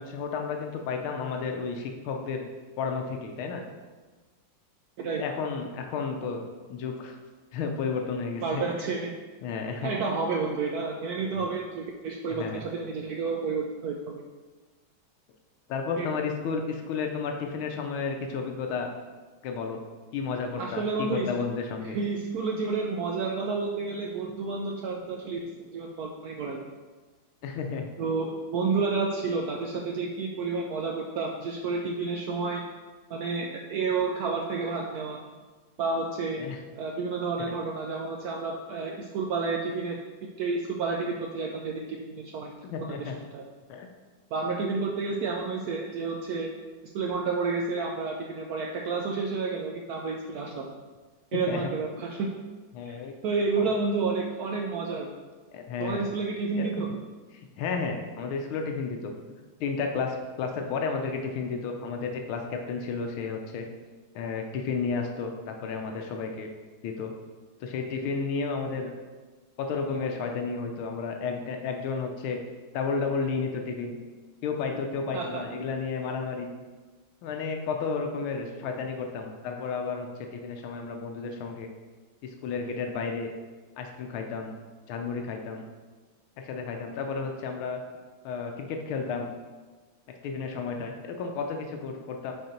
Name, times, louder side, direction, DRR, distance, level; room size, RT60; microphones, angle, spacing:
voice 1, 0.0-2.4 2.8-3.6 5.2-7.2 7.5-8.6 9.4-9.9 11.3-11.4 12.3-12.6 15.7-18.9 19.4-19.8 20.1-22.0 27.4-27.9 36.4-36.6 42.6-43.2 43.7-43.9 51.3-51.7 52.7-53.1 53.6-53.7 55.5-56.1 56.6-57.0 57.3-59.1 59.6-63.7 64.1-66.5 66.8-67.1 67.6-68.9 69.6-72.4 72.7-74.0 74.4-76.5 77.2-81.7 82.2-83.3 83.8-84.5 84.9-85.6 86.4-87.8 88.2-89.3 90.2-92.3, left 5 dB, 85° left, 3 dB, 1.6 m, -32 dB
voice 2, 8.4-9.1 9.8-14.2 16.0-16.1 20.6-21.3 21.9-25.4 25.7-26.6 28.0-32.6 33.1-35.2 35.8-36.4 36.7-40.0 40.4-42.5 42.9-43.4 44.3-46.5 46.9-50.8 51.3-52.4 52.9-53.0 53.2-55.1 55.8-56.9 75.1-75.4, right 4 dB, 90° right, 1 dB, 0.8 m, -30 dB
6.5 x 4.5 x 4.3 m, 1.3 s
omnidirectional pair, 2.2 m